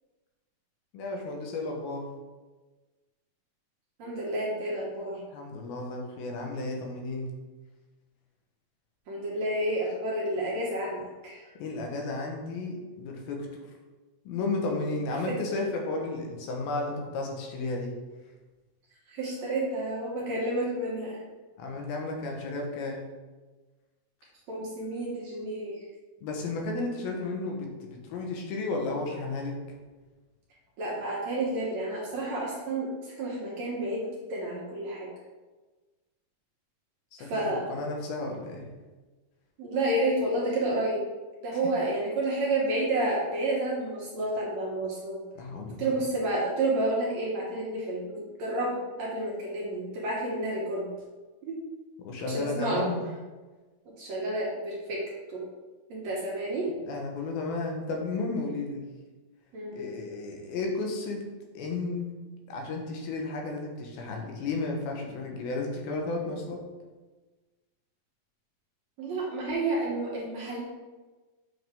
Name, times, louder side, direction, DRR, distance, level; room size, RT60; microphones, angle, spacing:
voice 1, 0.9-2.1 5.3-7.3 11.6-13.5 14.3-17.9 21.6-23.0 26.2-29.6 37.2-37.4 37.7-38.7 45.4-45.9 52.0-53.0 56.9-58.8 59.7-61.2 61.5-62.1 62.5-66.6, left 3 dB, 80° left, 1 dB, 2.9 m, -33 dB
voice 2, 4.0-5.2 9.1-11.4 15.3-15.4 19.1-21.2 24.5-25.7 30.8-35.1 37.3-37.7 39.6-41.0 41.4-45.2 45.8-50.9 51.4-51.6 52.3-52.9 54.0-55.0 55.3-55.4 55.9-56.7 59.5-59.9 69.0-70.6, right 1 dB, 60° right, -4 dB, 2.1 m, -30 dB
7.8 x 6.2 x 3.5 m, 1.3 s
omnidirectional pair, 4.3 m